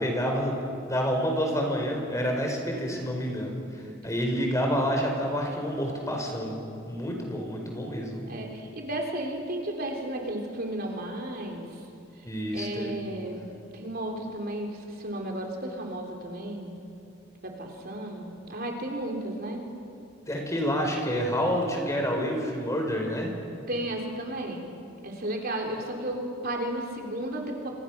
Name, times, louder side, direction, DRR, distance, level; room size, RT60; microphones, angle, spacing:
voice 1, 0.0-3.6 4.0-8.3 12.2-12.9 20.3-23.3, equal, 15° left, 2 dB, 4.6 m, -28 dB
voice 2, 8.3-11.7 12.5-13.5 13.7-16.8 17.4-19.7 23.7-24.8 25.0-27.7, right 1 dB, 50° right, 1 dB, 3.6 m, -33 dB
29.5 x 26.5 x 6.1 m, 2.4 s
head